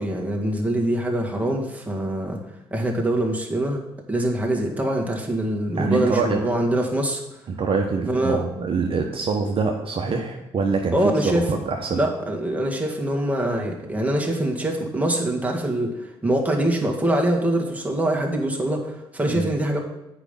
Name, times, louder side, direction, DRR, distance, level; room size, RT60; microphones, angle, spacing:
voice 1, 0.0-2.4 2.7-3.8 4.1-7.2 8.0-8.4 10.9-11.5 11.9-19.8, right 1 dB, 10° right, 0 dB, 2.0 m, -24 dB
voice 2, 5.8-6.4 7.5-10.9 11.5-12.0 19.3-19.5, right 4 dB, 45° right, 1 dB, 1.1 m, -25 dB
8.2 x 5.2 x 5.5 m, 0.93 s
hypercardioid pair, 50°, 12 cm